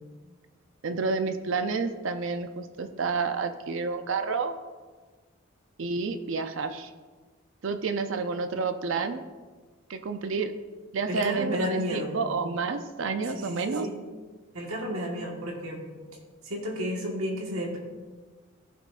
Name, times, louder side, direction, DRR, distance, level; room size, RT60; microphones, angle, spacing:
voice 1, 0.8-4.5 5.8-6.9 7.6-9.2 9.9-10.5 10.9-13.9, right 4 dB, 60° right, 8 dB, 0.5 m, -29 dB
voice 2, 11.1-12.1 13.3-14.0 14.5-15.8 16.4-17.8, equal, 75° right, -1 dB, 1.5 m, -32 dB
14.5 x 5.9 x 2.5 m, 1.4 s
head